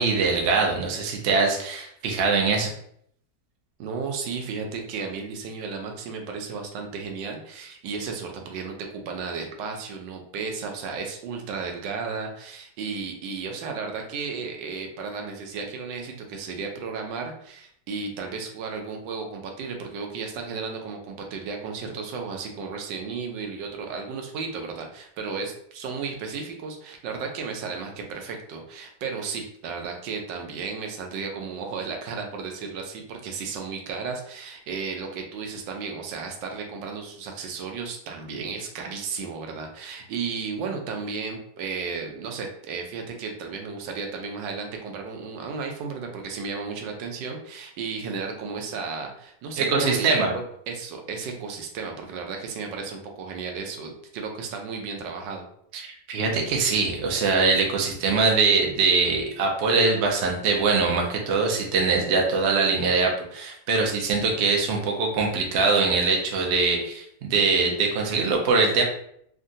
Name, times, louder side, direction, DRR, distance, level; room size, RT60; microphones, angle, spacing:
voice 1, 0.0-2.7 49.6-50.3 55.7-68.8, right 4 dB, 65° right, 0 dB, 0.6 m, -22 dB
voice 2, 3.8-55.5, right 5 dB, 85° right, 3 dB, 1.3 m, -34 dB
3.6 x 2.1 x 2.6 m, 0.68 s
omnidirectional pair, 1.9 m